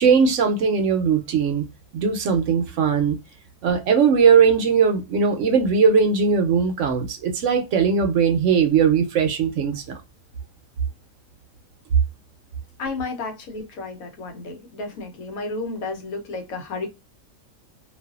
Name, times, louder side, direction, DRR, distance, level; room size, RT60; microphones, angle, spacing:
voice 1, 0.0-1.7 1.9-3.2 3.6-10.0, right 6 dB, 70° right, 0.9 m, -19 dB
voice 2, 12.8-16.9, left 3 dB, 90° left, 1.2 m, -32 dB
2.5 x 2.4 x 2.3 m
omnidirectional pair, 1.4 m